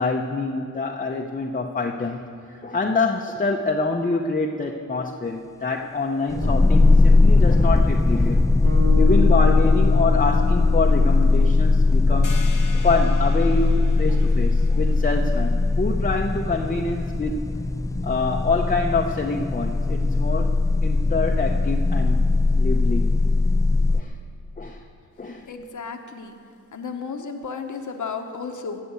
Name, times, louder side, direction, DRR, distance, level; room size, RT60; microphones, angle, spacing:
voice 1, 0.0-2.2 2.5-8.4 9.0-12.3 12.7-17.3 18.0-20.5 20.8-22.2 22.6-23.1 23.9-24.1 24.6-24.8 25.2-25.5, left 3 dB, 25° left, 1 dB, 0.8 m, -26 dB
sound 1, 6.3-24.0, left 3 dB, 10° left, 0.4 m, -19 dB
sound 2, 8.6-12.9, left 8 dB, 55° right, 2.6 m, -31 dB
sound 3, 12.2-17.6, left 5 dB, 85° left, 1.0 m, -44 dB
voice 2, 25.5-26.3 26.7-28.8, left 5 dB, 65° left, 5 dB, 1.1 m, -33 dB
18.5 x 6.8 x 8.2 m, 2.5 s
wide cardioid pair, 95°, 32 cm